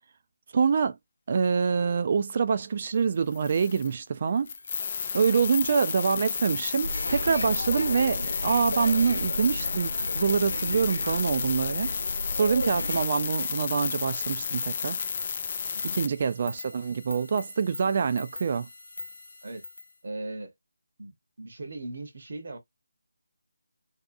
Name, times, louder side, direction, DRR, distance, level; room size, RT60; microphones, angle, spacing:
voice 1, 0.5-1.0 1.3-4.5 5.1-11.9 12.3-15.0 15.9-18.7, right 6 dB, 40° right, 0.4 m, -25 dB
sound 1, 3.3-3.9 4.5-16.1, left 6 dB, 35° left, 0.3 m, -32 dB
sound 2, 4.3-19.9, left 2 dB, 65° left, 0.7 m, -44 dB
sound 3, 6.8-13.0, equal, 90° left, 0.9 m, -35 dB
voice 2, 20.0-20.5 21.0-22.6, right 2 dB, 55° right, 0.9 m, -39 dB
2.7 x 2.3 x 2.5 m
figure-of-eight pair, 155°, 0 cm